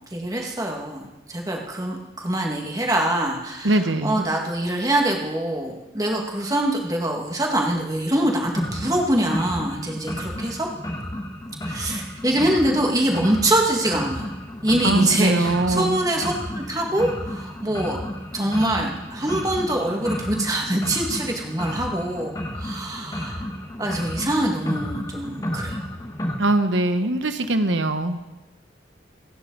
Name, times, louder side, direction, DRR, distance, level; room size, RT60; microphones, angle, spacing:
voice 1, 0.1-10.7 11.6-14.3 14.6-18.0 18.3-23.4 23.8-25.8, right 1 dB, 20° right, 0 dB, 1.9 m, -24 dB
voice 2, 3.6-4.2 14.8-16.0 26.4-28.3, right 2 dB, 85° right, 9 dB, 1.2 m, -22 dB
sound 1, 8.5-26.4, left 1 dB, 20° left, 1.4 m, -32 dB
27.5 x 9.7 x 4.0 m, 1.0 s
head